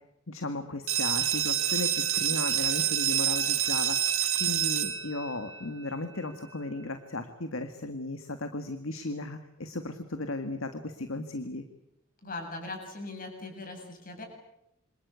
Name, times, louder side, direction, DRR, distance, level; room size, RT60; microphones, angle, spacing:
voice 1, 0.3-4.1 4.4-11.6, left 2 dB, 70° left, 8 dB, 1.8 m, -35 dB
sound 1, 0.9-6.3, right 11 dB, 80° right, 2.5 m, -28 dB
voice 2, 12.2-14.2, left 2 dB, 40° left, 3 dB, 8.0 m, -40 dB
27.5 x 26.0 x 8.2 m, 0.84 s
head